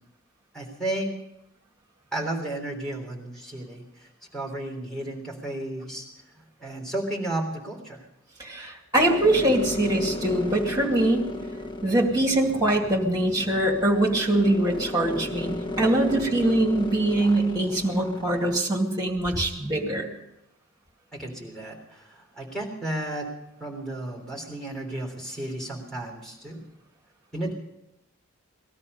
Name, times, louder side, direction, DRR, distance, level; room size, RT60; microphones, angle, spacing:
voice 1, 0.5-1.1 2.1-6.1 6.6-8.0 21.1-23.3 23.6-26.6 27.3-27.5, right 1 dB, 5° left, -1 dB, 3.3 m, -33 dB
voice 2, 8.4-11.2 11.8-20.1, right 1 dB, 20° right, 1 dB, 2.2 m, -23 dB
sound 1, 8.9-18.6, left 2 dB, 20° left, 1.2 m, -34 dB
19.5 x 13.0 x 5.5 m, 0.88 s
head